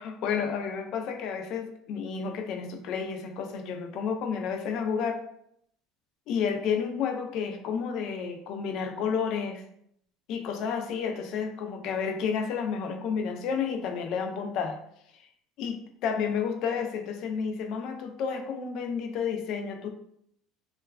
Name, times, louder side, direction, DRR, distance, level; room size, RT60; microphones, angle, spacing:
voice 1, 0.0-5.2 6.3-9.6 10.3-14.8 15.6-19.9, left 6 dB, 60° left, 6 dB, 0.4 m, -31 dB
3.1 x 2.2 x 2.2 m, 0.71 s
supercardioid pair, 120°, 0 cm